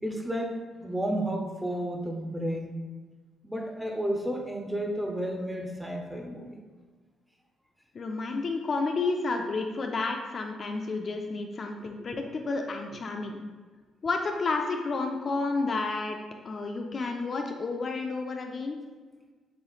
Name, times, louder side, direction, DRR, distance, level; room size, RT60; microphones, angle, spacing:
voice 1, 0.0-2.7 3.4-6.6, right 1 dB, 5° right, 2 dB, 0.6 m, -32 dB
voice 2, 7.9-13.4 14.0-16.2 16.4-18.8, left 3 dB, 45° left, 4 dB, 0.4 m, -31 dB
6.7 x 3.1 x 2.4 m, 1.4 s
cardioid pair, 90°, 0 cm